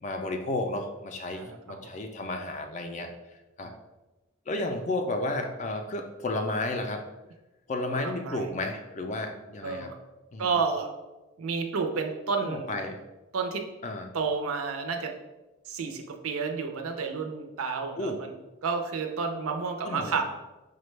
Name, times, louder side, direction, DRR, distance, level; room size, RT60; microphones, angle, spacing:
voice 1, 0.0-3.1 3.6-3.7 4.5-7.0 7.7-9.9 10.3-10.5 12.4-13.0 13.8-14.1 18.0-18.2 19.8-20.2, left 2 dB, 35° left, 4 dB, 0.3 m, -32 dB
voice 2, 1.4-1.8 3.6-3.7 7.9-8.5 9.6-10.0 10.4-10.9 11.4-12.7 13.3-13.6 14.1-15.1 15.7-18.3 18.6-20.2, right 5 dB, 85° right, 5 dB, 0.5 m, -31 dB
4.9 x 2.2 x 3.1 m, 1.1 s
head